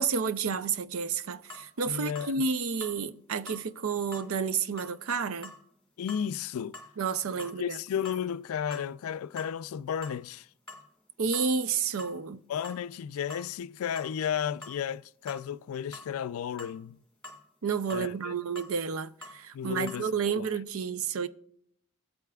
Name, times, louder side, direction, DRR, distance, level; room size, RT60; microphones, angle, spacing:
voice 1, 0.0-5.5 7.0-7.8 11.2-12.4 17.6-21.3, right 5 dB, 80° right, 0.5 m, -30 dB
sound 1, 1.5-1.7 2.2-2.3 2.8-3.0 3.5-3.6 4.1-4.3 4.8-5.0 5.4-5.6 6.1-6.3 6.7-6.9 7.4-7.6 8.0-8.4 8.7-8.9 9.4-9.5 10.0-10.2 10.7-10.9 11.3-11.5 12.0-12.2 12.6-12.8 13.3-13.5 14.0-14.1 14.6-14.8 15.3-15.5 15.9-16.1 16.6-16.8 17.2-17.4 17.9-18.1 18.6-18.7 19.2-19.4 19.9-20.1, left 2 dB, 5° left, 1.9 m, -46 dB
voice 2, 1.9-2.4 6.0-6.8 7.6-10.5 12.5-17.0 17.9-18.3 19.5-20.5, left 8 dB, 85° left, 0.3 m, -33 dB
17.0 x 8.2 x 2.3 m
head